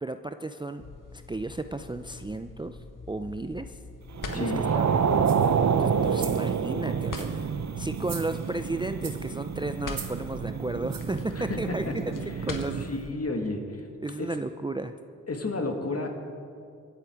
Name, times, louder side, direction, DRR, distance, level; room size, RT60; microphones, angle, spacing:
voice 1, 0.0-0.8 1.1-2.8 3.1-3.8 4.3-4.9 5.7-7.5 7.8-12.9 14.0-14.9, right 2 dB, 15° right, 8 dB, 0.5 m, -34 dB
sound 1, 0.8-13.1, left 4 dB, 60° left, 1.5 m, -43 dB
sound 2, 4.2-12.9, right 6 dB, 50° right, 0.7 m, -28 dB
voice 2, 4.3-4.8 11.4-11.6 11.9-12.0 12.5-12.6 12.9-13.8 15.3-16.1, left 2 dB, 45° left, 3 dB, 2.3 m, -31 dB
sound 3, 5.2-5.6 6.0-6.5 7.0-7.5 7.9-8.6 9.0-9.3 9.9-10.2 10.9-11.2 11.8-11.9, right 7 dB, 70° right, 1.3 m, -42 dB
23.5 x 8.2 x 4.7 m, 2.4 s
cardioid pair, 45°, 35 cm